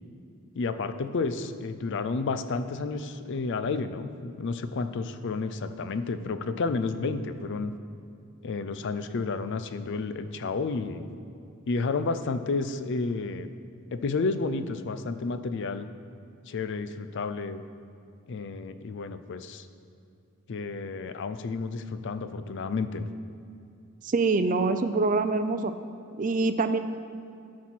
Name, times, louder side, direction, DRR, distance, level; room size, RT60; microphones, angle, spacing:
voice 1, 0.5-7.7 8.4-11.1 11.7-13.5 13.9-15.9 16.5-17.6 18.3-19.7 20.5-23.1, left 4 dB, 55° left, 10 dB, 0.4 m, -31 dB
voice 2, 24.0-25.7 26.2-26.8, right 3 dB, 35° right, 9 dB, 0.4 m, -25 dB
12.5 x 4.2 x 6.2 m, 2.5 s
head